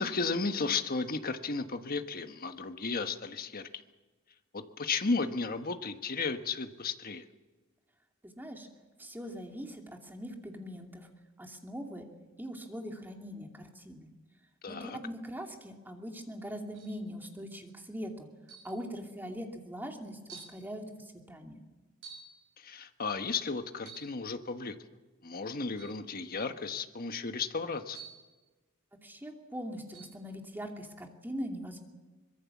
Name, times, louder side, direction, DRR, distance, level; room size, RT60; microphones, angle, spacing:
voice 1, 0.0-3.7 4.5-7.2 14.6-15.0 22.6-24.7 25.2-28.0, left 4 dB, 45° left, 8 dB, 1.3 m, -34 dB
voice 2, 8.2-8.7 9.0-11.1 11.4-12.1 12.4-14.1 14.7-18.3 18.6-20.8 21.3-21.6 29.0-31.8, equal, 10° right, 3 dB, 2.6 m, -41 dB
sound 1, 16.7-17.1 18.5-18.8 19.6-19.7 20.3-20.6 22.0-22.4 23.8-24.2 25.8-26.0 27.9-28.3 29.9-30.2, right 5 dB, 60° right, 6.2 m, -50 dB
24.0 x 21.5 x 7.3 m, 1.2 s
head